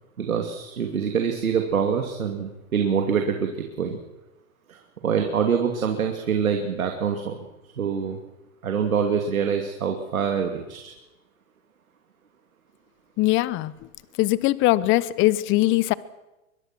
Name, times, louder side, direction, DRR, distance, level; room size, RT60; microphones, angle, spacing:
voice 1, 0.2-4.0 4.7-7.4 7.8-8.2 8.6-10.9, right 7 dB, 85° right, 4 dB, 2.7 m, -25 dB
voice 2, 13.2-13.7 14.2-15.9, left 17 dB, 30° left, 19 dB, 0.9 m, -21 dB
23.5 x 21.5 x 6.2 m, 0.99 s
hypercardioid pair, 120°, 41 cm